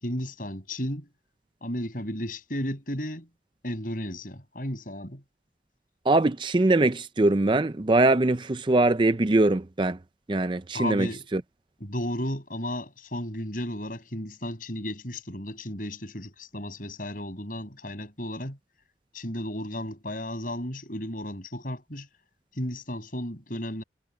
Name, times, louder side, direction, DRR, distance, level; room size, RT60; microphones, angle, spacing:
voice 1, 0.0-1.1 1.6-3.3 3.6-5.2 10.7-11.3 11.8-18.6 19.1-22.1 22.5-23.8, left 1 dB, 50° left, 7.0 m, -34 dB
voice 2, 6.1-10.0 10.3-11.1 11.3-11.4, right 2 dB, 25° right, 0.5 m, -22 dB
head